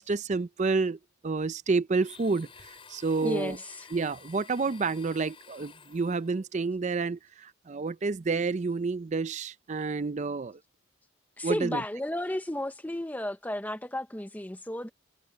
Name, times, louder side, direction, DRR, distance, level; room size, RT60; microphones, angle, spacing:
voice 1, 0.0-2.5 2.9-3.6 3.9-10.6 11.4-11.8, right 4 dB, 35° right, 0.4 m, -29 dB
Domestic sounds home sounds, 2.0-6.4, left 6 dB, 25° left, 5.0 m, -52 dB
voice 2, 3.2-3.9 11.4-14.9, left 1 dB, 10° left, 0.7 m, -33 dB
head